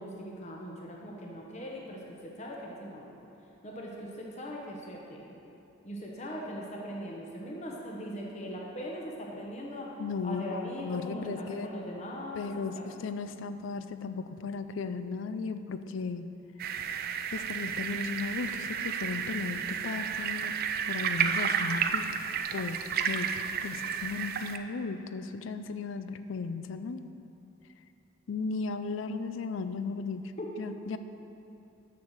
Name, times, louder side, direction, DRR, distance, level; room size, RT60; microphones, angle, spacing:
voice 1, 0.0-3.1 3.6-5.3 5.8-9.9 10.2-12.9 19.9-20.0 30.4-30.5 30.9-31.0, equal, 35° left, -2 dB, 0.9 m, -40 dB
voice 2, 10.0-11.7 12.4-16.3 17.3-20.5 20.8-22.1 22.5-23.3 23.6-27.1 28.3-30.2 30.6-31.0, left 4 dB, 70° left, 11 dB, 0.4 m, -35 dB
sound 1, 16.6-24.6, right 7 dB, 50° right, 0.4 m, -32 dB
6.8 x 6.3 x 6.5 m, 2.8 s
head